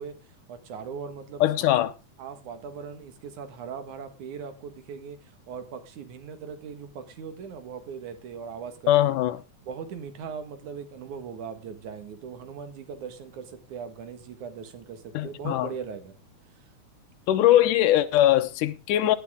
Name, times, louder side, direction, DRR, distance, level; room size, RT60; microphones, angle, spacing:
voice 1, 0.0-1.8 2.2-9.2 9.6-16.2 16.6-16.7, right 6 dB, 70° right, 3.0 m, -39 dB
voice 2, 1.4-1.9 8.9-9.4 15.1-15.7 17.3-19.2, left 13 dB, 85° left, 2.5 m, -21 dB
17.0 x 9.5 x 3.6 m
omnidirectional pair, 3.6 m